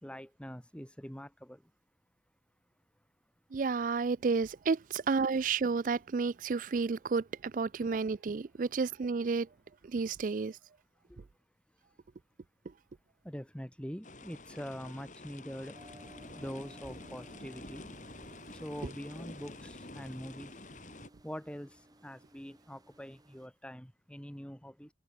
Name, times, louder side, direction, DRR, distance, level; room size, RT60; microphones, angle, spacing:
voice 1, 0.0-1.6 11.1-11.2 13.2-15.8 16.3-17.9 18.6-20.5 21.2-21.7 22.0-24.9, equal, 5° left, 1.5 m, -44 dB
voice 2, 3.5-9.5 9.8-10.6 18.8-18.9, right 4 dB, 45° right, 0.4 m, -31 dB
sound 1, 14.0-21.1, left 2 dB, 45° left, 3.8 m, -49 dB
sound 2, 15.7-23.5, right 1 dB, 20° right, 2.8 m, -57 dB
head